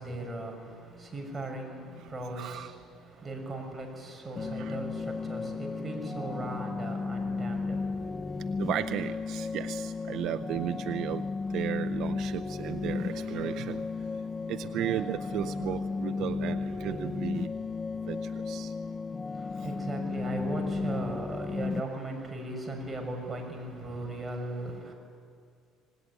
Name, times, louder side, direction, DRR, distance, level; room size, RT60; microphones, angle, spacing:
voice 1, 0.0-8.7 19.3-24.9, right 2 dB, 15° right, 2 dB, 6.2 m, -38 dB
voice 2, 2.4-2.7 4.4-4.8 8.6-13.9 14.5-17.5 18.1-18.7, right 12 dB, 60° right, 10 dB, 0.5 m, -35 dB
sound 1, 4.4-21.8, left 4 dB, 20° left, 0.6 m, -34 dB
25.5 x 19.5 x 9.9 m, 2.2 s
cardioid pair, 120°, 0 cm